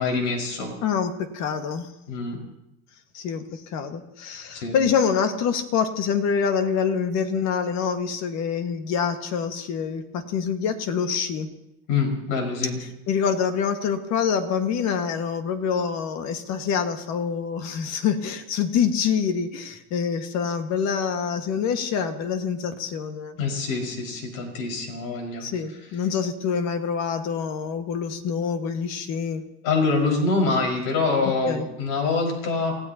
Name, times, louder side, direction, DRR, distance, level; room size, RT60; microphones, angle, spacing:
voice 1, 0.0-0.7 2.1-2.4 4.5-4.8 11.9-12.8 23.4-25.4 29.6-32.8, left 4 dB, 70° left, 2 dB, 5.2 m, -25 dB
voice 2, 0.8-1.9 3.1-11.5 13.1-23.4 25.4-29.4 31.5-31.6, left 6 dB, 55° left, 7 dB, 1.7 m, -26 dB
28.5 x 16.0 x 2.9 m, 0.85 s
cardioid pair, 135°, 33 cm